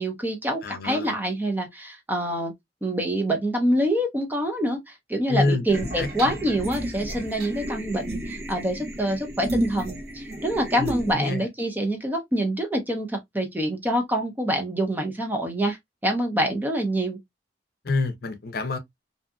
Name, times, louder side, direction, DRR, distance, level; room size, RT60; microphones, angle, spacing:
voice 1, 0.0-2.5 2.8-15.8 16.0-17.2, right 1 dB, 10° right, 0.6 m, -26 dB
voice 2, 0.6-1.1 5.3-6.3 10.8-11.4 17.8-18.8, left 3 dB, 55° left, 0.6 m, -27 dB
sound 1, 5.7-11.1, right 1 dB, 60° right, 0.9 m, -32 dB
2.6 x 2.4 x 2.3 m
head